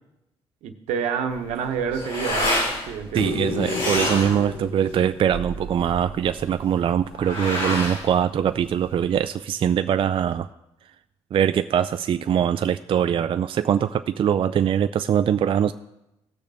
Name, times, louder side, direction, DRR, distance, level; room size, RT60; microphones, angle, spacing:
voice 1, 0.6-2.6 2.9-3.3, right 6 dB, 85° right, 6 dB, 1.0 m, -28 dB
sound 1, 1.3-9.2, left 1 dB, 90° left, 4.6 m, -29 dB
voice 2, 3.1-10.5 11.3-15.7, right 9 dB, 50° right, 11 dB, 0.3 m, -22 dB
sound 2, 3.2-6.4 9.0-9.1, left 5 dB, 55° left, 0.8 m, -33 dB
17.0 x 6.6 x 3.5 m, 0.91 s
supercardioid pair, 70°, 11 cm